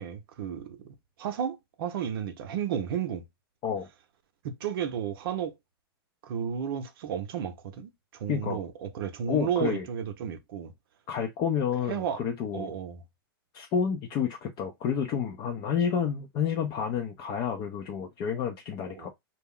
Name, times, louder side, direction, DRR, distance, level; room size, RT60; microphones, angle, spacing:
voice 1, 0.0-3.2 4.4-5.5 6.2-10.7 11.9-12.2 12.5-13.0 19.0-19.1, right 8 dB, 65° right, 0.6 m, -33 dB
voice 2, 8.3-8.6 9.3-9.9 11.1-12.7 13.5-19.1, left 7 dB, 35° left, 0.5 m, -30 dB
2.3 x 2.0 x 3.7 m
hypercardioid pair, 120°, 13 cm